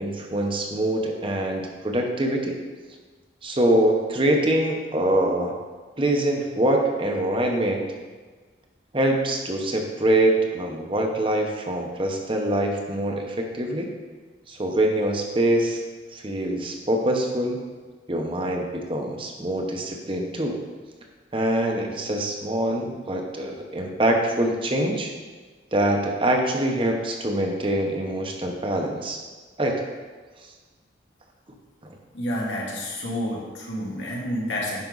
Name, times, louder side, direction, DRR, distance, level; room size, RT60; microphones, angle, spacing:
voice 1, 0.0-2.6 3.4-5.6 6.0-7.8 8.9-13.9 14.5-15.8 16.1-17.6 18.1-20.6 21.3-25.1 25.7-29.2 29.6-29.8 30.4-30.5 31.8-31.9, right 1 dB, 30° right, 2 dB, 0.9 m, -24 dB
voice 2, 32.1-34.8, left 1 dB, 90° left, -4 dB, 2.2 m, -29 dB
10.5 x 5.2 x 4.0 m, 1.4 s
head